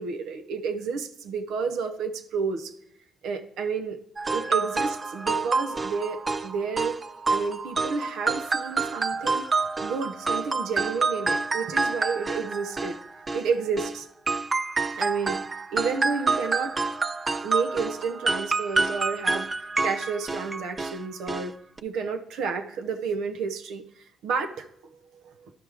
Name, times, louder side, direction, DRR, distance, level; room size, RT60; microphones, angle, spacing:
voice 1, 0.0-2.7 3.2-4.0 4.3-7.0 7.3-9.4 9.8-13.0 13.3-14.1 15.0-15.4 15.7-16.9 17.4-21.5 21.8-25.5, right 5 dB, 85° right, 6 dB, 0.6 m, -31 dB
sound 1, 4.2-14.0 14.3-21.0 21.3-21.5 21.8-21.9, right 3 dB, 30° right, 0.4 m, -28 dB
12.5 x 4.7 x 3.3 m, 0.76 s
cardioid pair, 90°, 0 cm